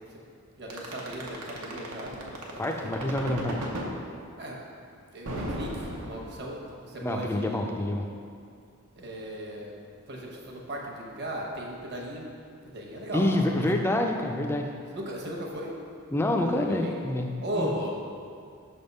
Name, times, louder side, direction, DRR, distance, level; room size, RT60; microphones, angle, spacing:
voice 1, 0.6-2.3 4.4-4.6 5.1-7.7 9.0-9.7 10.1-12.3 12.7-13.6 14.9-15.7 16.4-17.0 17.4-17.9, right 1 dB, 50° right, -1 dB, 1.0 m, -36 dB
sound 1, 0.7-3.9 5.3-6.7, right 1 dB, 85° right, 0.9 m, -35 dB
voice 2, 2.6-3.6 7.0-8.1 13.1-14.7 16.1-17.3 17.5-17.7, left 1 dB, 10° left, 3 dB, 0.3 m, -27 dB
6.3 x 3.5 x 5.3 m, 2.3 s
head